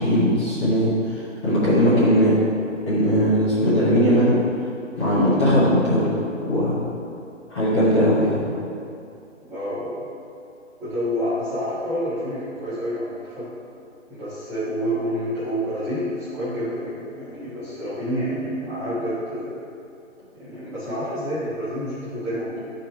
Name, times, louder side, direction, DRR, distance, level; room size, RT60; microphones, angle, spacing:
voice 1, 0.0-2.4 2.9-4.3 5.0-6.1 6.4-6.8 7.5-8.4, equal, 20° left, -10 dB, 1.2 m, -19 dB
voice 2, 9.5-10.1 10.8-13.5 14.1-19.6 20.3-22.7, equal, 5° right, -14 dB, 1.2 m, -28 dB
8.9 x 4.5 x 3.3 m, 2.6 s
figure-of-eight pair, 155°, 38 cm